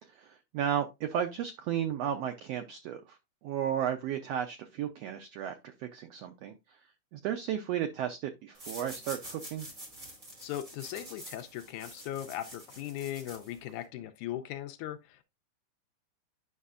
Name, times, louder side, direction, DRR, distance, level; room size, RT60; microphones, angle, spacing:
voice 1, 0.0-6.8 7.1-9.7, right 9 dB, 80° right, 1.4 m, -34 dB
sound 1, 8.5-13.9, right 1 dB, 25° right, 3.0 m, -47 dB
voice 2, 10.4-15.2, left 12 dB, 80° left, 2.0 m, -38 dB
9.6 x 5.6 x 2.5 m
omnidirectional pair, 3.6 m